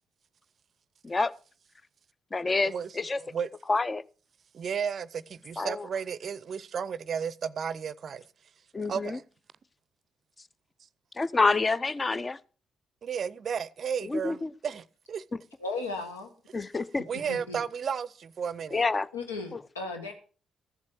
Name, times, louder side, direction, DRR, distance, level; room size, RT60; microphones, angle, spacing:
voice 1, 2.3-3.2 3.7-4.0 5.6-5.9 8.7-9.2 11.2-12.4 14.0-14.5 15.3-15.4 16.5-17.0 18.7-19.1, left 3 dB, 30° left, 0.6 m, -27 dB
voice 2, 3.2-3.5 4.5-8.2 8.9-9.2 13.0-15.2 17.1-18.8, right 7 dB, 45° right, 0.5 m, -33 dB
voice 3, 15.6-16.3 17.3-17.6 19.1-20.1, left 3 dB, 80° left, 1.4 m, -35 dB
14.5 x 7.4 x 6.1 m
figure-of-eight pair, 40°, 0 cm